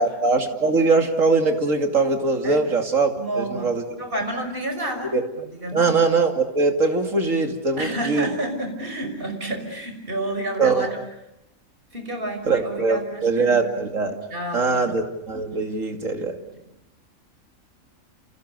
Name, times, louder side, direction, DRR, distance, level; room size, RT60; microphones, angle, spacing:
voice 1, 0.0-3.8 5.1-5.2 5.7-8.3 10.6-10.9 12.5-14.2 14.5-16.4, right 3 dB, 70° right, 5 dB, 3.0 m, -21 dB
voice 2, 3.2-3.7 4.0-5.1 5.5-6.1 7.8-11.0 11.9-13.9 14.3-14.9, right 1 dB, 40° right, 5 dB, 6.0 m, -30 dB
29.5 x 29.0 x 6.8 m, 0.87 s
omnidirectional pair, 1.4 m